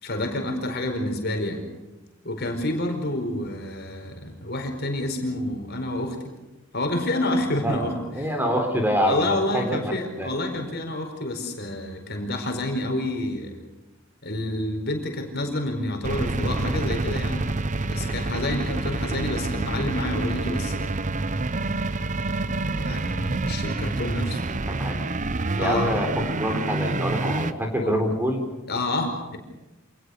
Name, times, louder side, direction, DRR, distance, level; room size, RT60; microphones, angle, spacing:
voice 1, 0.0-1.6 2.2-6.2 6.7-8.3 9.0-13.6 14.2-17.5 17.9-20.9 22.0-24.4 25.6-26.0 27.7-28.2 28.7-29.4, left 1 dB, 50° left, 4 dB, 4.8 m, -29 dB
voice 2, 7.6-9.9 10.2-10.3 24.8-25.0 25.6-28.4, equal, 10° right, 3 dB, 3.9 m, -26 dB
sound 1, 16.0-27.5, right 2 dB, 35° right, 0.8 m, -27 dB
27.5 x 19.5 x 6.6 m, 1.0 s
head